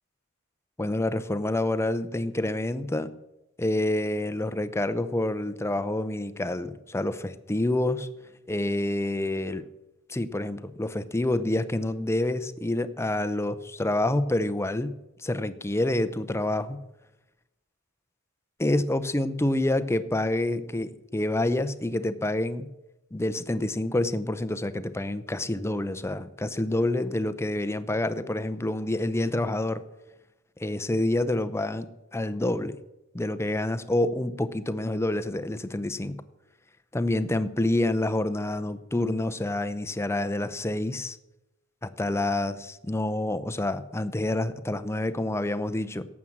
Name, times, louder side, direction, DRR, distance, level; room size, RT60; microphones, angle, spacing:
voice 1, 0.8-3.1 3.6-8.1 8.5-9.6 10.1-14.9 15.2-16.8 18.6-22.7 23.1-29.8 30.6-32.8 33.1-36.2 36.9-41.2 41.8-46.0, left 1 dB, 10° left, 12 dB, 0.6 m, -27 dB
17.0 x 7.4 x 7.3 m, 0.96 s
head